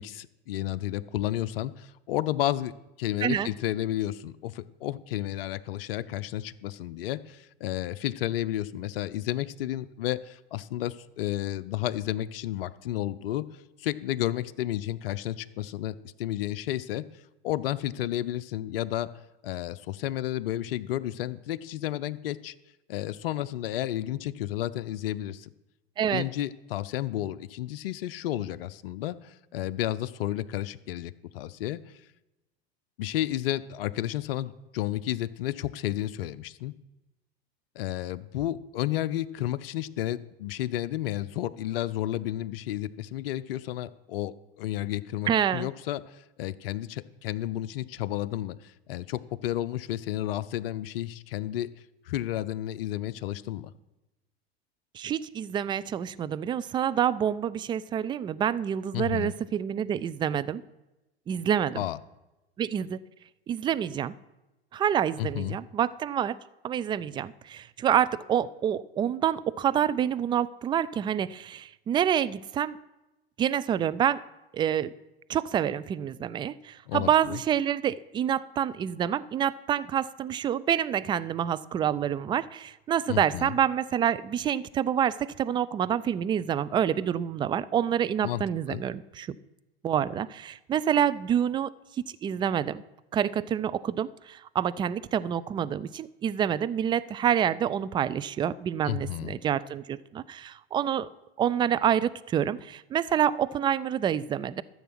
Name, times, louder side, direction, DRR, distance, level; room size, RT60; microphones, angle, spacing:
voice 1, 0.0-2.7 3.0-17.0 17.4-19.1 19.4-22.5 22.9-25.5 26.1-31.8 33.0-36.7 37.8-51.7 52.1-53.7 58.9-59.3 61.7-62.0 65.2-65.6 76.9-77.4 83.1-83.6 88.2-88.4 88.7-88.8 98.8-99.3, left 13 dB, 65° left, 13 dB, 0.6 m, -32 dB
voice 2, 26.0-26.3 45.3-45.7 54.9-60.6 61.3-61.9 62.6-63.0 63.5-64.1 64.7-66.4 66.6-72.8 73.4-74.2 74.5-74.9 75.3-89.3 89.8-91.7 92.2-92.8 93.1-101.1 101.4-104.6, right 9 dB, 15° right, 16 dB, 0.3 m, -27 dB
13.5 x 7.1 x 6.0 m, 0.99 s
figure-of-eight pair, 85°, 31 cm